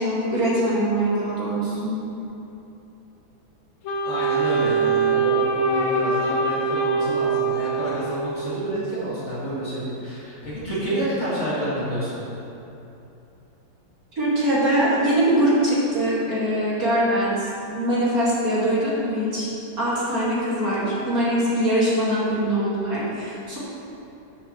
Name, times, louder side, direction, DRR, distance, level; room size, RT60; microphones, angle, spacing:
voice 1, 0.0-1.9 14.2-19.5 19.8-23.6, right 1 dB, 45° right, -9 dB, 2.5 m, -22 dB
Wind instrument woodwind instrument, 3.8-8.5, right 4 dB, 60° left, 0.9 m, -23 dB
voice 2, 4.0-12.2, right 1 dB, 35° left, -10 dB, 2.2 m, -28 dB
12.5 x 6.7 x 3.2 m, 2.9 s
omnidirectional pair, 2.2 m